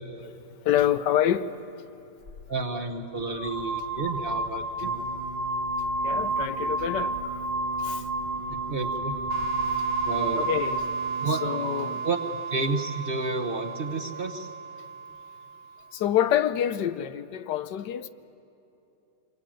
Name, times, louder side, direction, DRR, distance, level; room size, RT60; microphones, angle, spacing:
voice 1, 0.6-1.5 6.0-7.4 7.8-8.1 10.4-10.9 11.4-12.0 15.9-18.1, left 11 dB, 80° left, 1.4 m, -27 dB
sound 1, 2.3-2.4 3.2-11.0, right 1 dB, 65° left, 2.6 m, -31 dB
voice 2, 2.5-4.9 8.5-9.1 10.0-10.5 11.2-11.4 12.0-12.2 12.5-14.5, right 3 dB, 35° right, 1.3 m, -30 dB
Singing, 4.8-12.0, right 5 dB, 30° left, 1.2 m, -41 dB
sound 2, 9.3-15.8, right 6 dB, 85° right, 1.7 m, -33 dB
26.5 x 23.0 x 9.1 m
omnidirectional pair, 1.8 m